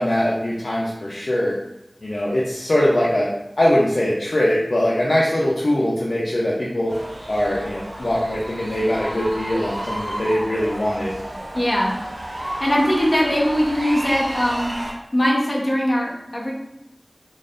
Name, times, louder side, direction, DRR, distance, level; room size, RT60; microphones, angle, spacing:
voice 1, 0.0-1.5 2.0-3.3 3.6-6.9 7.3-11.1, left 1 dB, 80° left, -5 dB, 0.7 m, -21 dB
sound 1, 6.9-14.9, right 1 dB, 85° right, 0.9 m, -32 dB
voice 2, 11.5-11.9 12.6-14.7 15.1-16.5, equal, 35° left, -3 dB, 1.1 m, -20 dB
4.3 x 3.8 x 2.6 m, 0.86 s
wide cardioid pair, 50°, 0 cm